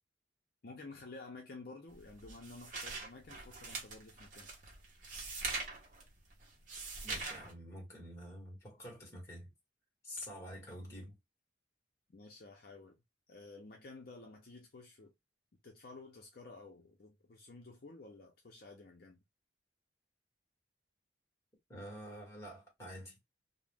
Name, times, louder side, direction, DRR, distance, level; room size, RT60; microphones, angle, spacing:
voice 1, 0.6-4.5 12.1-13.0 13.3-15.1 15.6-19.2, left 3 dB, 55° left, 0.6 m, -52 dB
sound 1, 1.9-7.5, right 3 dB, 45° right, 0.8 m, -43 dB
voice 2, 7.0-9.5 10.0-11.2 21.7-23.2, equal, 15° left, 1.2 m, -47 dB
2.4 x 2.1 x 3.3 m
head